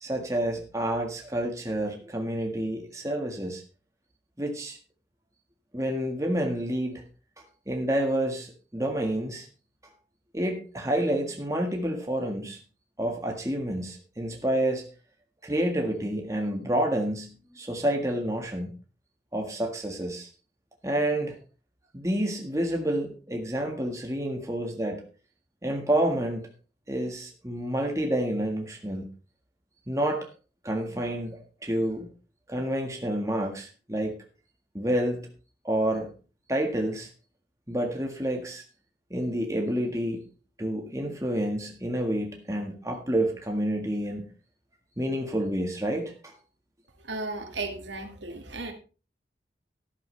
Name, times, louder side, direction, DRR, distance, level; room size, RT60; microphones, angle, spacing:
voice 1, 0.0-3.6 4.4-4.8 5.7-7.0 7.7-9.5 10.3-12.6 13.0-14.8 15.4-18.7 19.3-20.3 20.8-21.4 21.9-25.1 25.6-26.5 26.9-29.1 29.9-30.3 30.6-32.1 32.5-34.2 34.7-35.3 35.6-36.1 36.5-37.1 37.7-38.6 39.1-40.2 40.6-44.3 45.0-46.3, right 1 dB, 15° right, 2 dB, 1.6 m, -29 dB
voice 2, 47.0-48.7, right 3 dB, 90° right, 5 dB, 2.1 m, -35 dB
13.0 x 11.5 x 3.3 m, 0.35 s
head